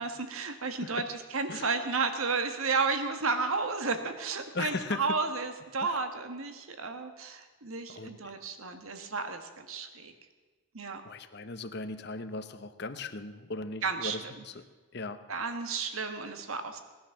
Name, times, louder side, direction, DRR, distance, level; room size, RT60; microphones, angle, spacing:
voice 1, 0.0-10.1 10.7-11.0 13.8-14.3 15.3-16.8, right 4 dB, 80° right, 8 dB, 1.6 m, -32 dB
voice 2, 4.5-5.2 5.8-6.0 7.9-8.3 11.0-14.6 14.9-15.2, left 3 dB, 50° left, 10 dB, 0.9 m, -38 dB
19.0 x 10.5 x 7.2 m, 1.3 s
head